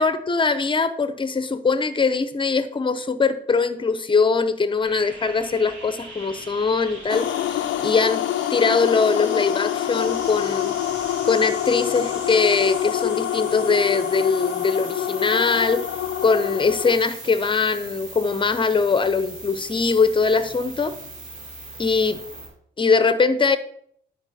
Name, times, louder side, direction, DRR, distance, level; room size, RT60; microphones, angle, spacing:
voice 1, 0.0-7.3 7.8-8.2 8.5-10.7 11.2-15.8 16.2-20.9 21.8-22.2 22.8-23.6, left 4 dB, 25° left, 11 dB, 0.8 m, -21 dB
sound 1, 4.8-22.5, right 2 dB, 75° right, 3.2 m, -40 dB
sound 2, 7.1-17.0, left 12 dB, 70° left, 0.4 m, -26 dB
10.5 x 4.8 x 4.2 m, 0.67 s
cardioid pair, 90°, 20 cm